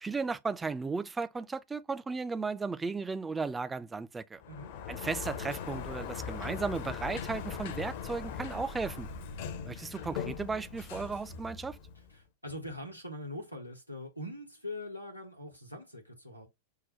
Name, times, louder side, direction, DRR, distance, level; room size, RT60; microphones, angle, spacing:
voice 1, 0.0-4.4 4.9-9.1 9.6-11.8, right 4 dB, 15° right, 0.4 m, -35 dB
Sliding door, 4.4-12.2, left 7 dB, 50° left, 0.6 m, -40 dB
voice 2, 12.1-16.5, left 1 dB, 85° left, 1.0 m, -42 dB
5.6 x 2.2 x 2.9 m
figure-of-eight pair, 90°, 0 cm